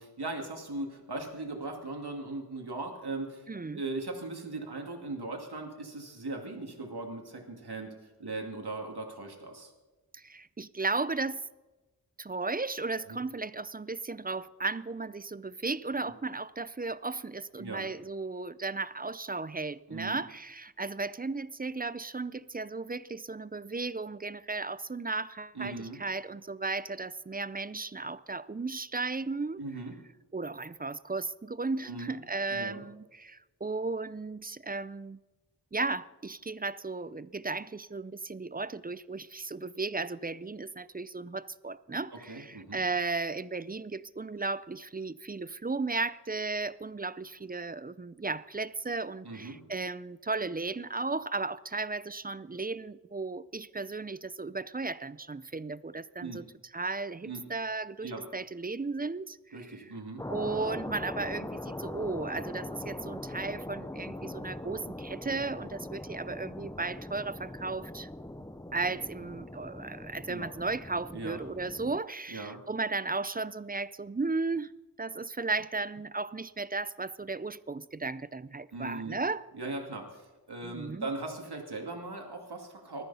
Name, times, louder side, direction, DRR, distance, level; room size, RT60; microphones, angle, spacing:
voice 1, 0.0-3.5 3.7-9.7 13.1-13.2 16.0-16.1 17.6-17.9 19.9-20.2 25.5-26.0 29.6-29.9 31.8-32.1 32.5-32.8 42.3-42.8 49.2-49.6 56.2-56.4 57.2-57.4 58.0-58.2 59.5-60.2 70.3-70.5 71.1-71.4 72.3-72.6 78.7-79.2 79.5-83.0, right 2 dB, 80° right, 2.6 m, -39 dB
voice 2, 3.5-3.8 10.1-11.5 12.2-29.6 30.3-35.2 35.7-56.4 56.7-59.6 60.3-68.1 68.7-74.7 75.0-79.5 80.6-81.1, right 3 dB, 25° right, 0.4 m, -35 dB
sound 1, 60.2-72.0, left 1 dB, 10° left, 0.7 m, -41 dB
19.5 x 13.5 x 4.2 m
wide cardioid pair, 65°, 39 cm